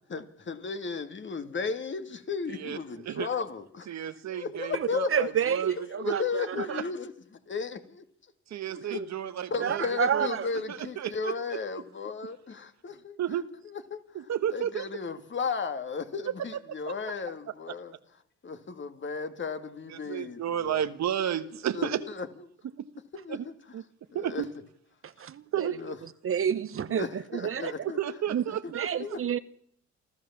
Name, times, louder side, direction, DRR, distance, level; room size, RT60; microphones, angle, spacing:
voice 1, 0.1-3.9 4.3-5.3 5.8-7.1 7.5-8.0 8.9-9.0 9.5-13.1 13.6-14.0 14.5-17.9 18.4-20.9 21.7-22.3 23.1-23.4 24.1-24.4 25.7-26.0 26.9-28.0 28.6-28.7 29.0-29.2, left 5 dB, 40° left, 2.1 m, -34 dB
voice 2, 2.5-2.8 3.0-3.3 3.9-5.7 6.0-6.2 6.5-6.8 8.5-9.8 10.1-10.3 10.7-11.3 13.2-13.5 14.1-14.9 16.3-16.4 16.9-17.0 17.7-17.8 19.9-22.0 22.8-22.9 23.3-23.5 23.7-23.8 24.1-24.5 25.5-25.8 27.8-29.2, right 10 dB, 65° right, 1.3 m, -32 dB
voice 3, 4.7-6.8 8.7-9.1 9.6-10.5 25.0-25.7 26.2-27.9 28.3-28.4 28.7-29.4, right 8 dB, 45° right, 0.8 m, -30 dB
28.5 x 13.0 x 7.3 m
cardioid pair, 90°, 30 cm